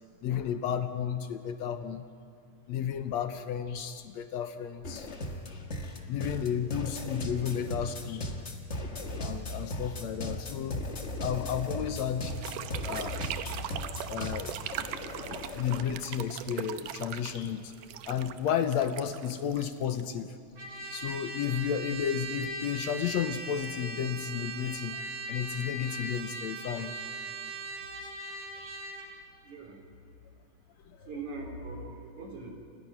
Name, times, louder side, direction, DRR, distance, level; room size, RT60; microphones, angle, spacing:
voice 1, 0.2-2.1 2.7-5.1 6.1-8.3 9.2-10.9 11.2-12.4 12.8-13.6 14.1-14.5 15.1-17.7 18.0-20.4 20.9-25.0 25.3-26.9 28.6-28.8 30.9-31.1, left 8 dB, 70° left, 9 dB, 1.9 m, -33 dB
sound 1, 4.8-16.0, left 1 dB, 30° left, 1.3 m, -37 dB
sound 2, 12.2-20.2, right 11 dB, 85° right, 2.4 m, -40 dB
Trumpet, 20.6-29.1, right 2 dB, 40° right, 3.4 m, -39 dB
voice 2, 29.5-29.8 31.1-32.5, right 3 dB, 65° right, 2 dB, 4.8 m, -40 dB
29.0 x 28.0 x 6.0 m, 2.3 s
omnidirectional pair, 3.7 m